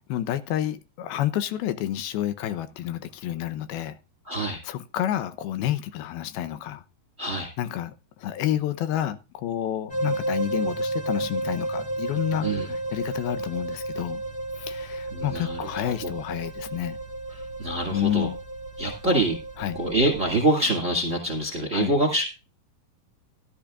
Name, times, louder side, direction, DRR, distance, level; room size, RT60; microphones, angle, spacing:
voice 1, 0.1-4.0 4.6-6.8 7.6-7.9 8.2-14.2 14.6-17.0 17.9-18.4 19.6-19.8 21.7-21.9, left 11 dB, 80° left, 2.6 m, -29 dB
voice 2, 4.2-4.6 7.2-7.5 12.4-12.7 15.1-16.1 17.3-18.3 18.8-19.4 19.7-22.2, right 1 dB, 30° right, 1.5 m, -25 dB
sound 1, 9.9-20.4, right 2 dB, 45° left, 0.5 m, -32 dB
15.5 x 12.0 x 2.4 m
omnidirectional pair, 4.5 m